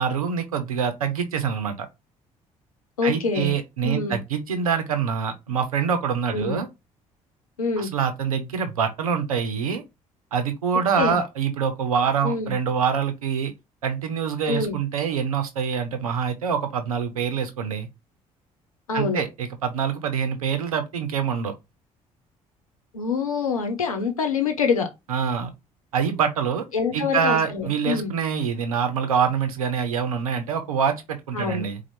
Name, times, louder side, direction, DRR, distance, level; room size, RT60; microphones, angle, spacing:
voice 1, 0.0-1.9 3.0-6.7 7.8-9.8 10.3-13.5 13.8-17.9 18.9-21.5 25.1-25.5 25.9-26.6 26.9-31.8, right 7 dB, 80° right, 0.7 m, -25 dB
voice 2, 3.0-3.5 3.8-4.2 6.3-6.6 7.6-7.9 11.0-11.2 12.2-12.5 14.5-14.8 18.9-19.2 22.9-24.9 26.7-28.1 31.3-31.7, left 5 dB, 85° left, 0.8 m, -25 dB
4.3 x 2.3 x 4.3 m
figure-of-eight pair, 50°, 18 cm